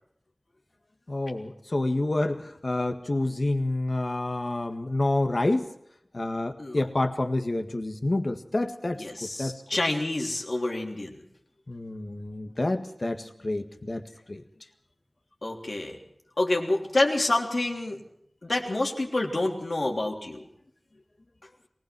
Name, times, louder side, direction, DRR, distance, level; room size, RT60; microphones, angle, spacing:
voice 1, 1.1-5.7 6.1-9.0 9.4-9.6 11.7-14.0 14.3-14.4, left 2 dB, 60° left, 6 dB, 1.8 m, -28 dB
voice 2, 8.9-11.2 15.4-16.0 16.4-18.0 18.4-20.5, left 2 dB, 75° left, 0 dB, 3.4 m, -28 dB
23.0 x 19.0 x 6.1 m, 0.74 s
wide cardioid pair, 55°, 0 cm